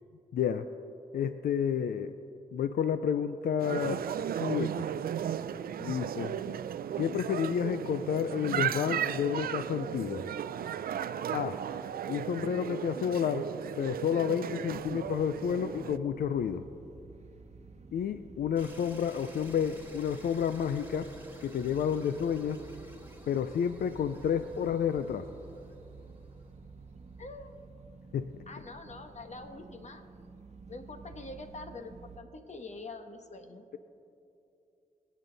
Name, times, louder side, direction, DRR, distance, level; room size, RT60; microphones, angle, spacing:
voice 1, 0.3-0.7 1.1-2.2 2.5-4.1 4.4-4.9 5.8-6.6 7.0-10.3 11.3-11.6 12.1-13.5 13.8-16.7 17.9-21.1 21.4-22.6 23.3-25.3 28.1-28.3, left 8 dB, 90° left, 11 dB, 0.4 m, -30 dB
sound 1, 3.6-16.0, right 9 dB, 85° right, 0.4 m, -35 dB
sound 2, 14.7-32.2, right 4 dB, 50° right, 1.0 m, -51 dB
sound 3, 18.5-26.6, right 1 dB, 15° right, 2.2 m, -55 dB
voice 2, 27.2-27.6 28.5-30.1 30.7-33.7, left 3 dB, 50° left, 6 dB, 1.3 m, -45 dB
23.5 x 8.4 x 4.0 m, 2.8 s
cardioid pair, 60°, 15 cm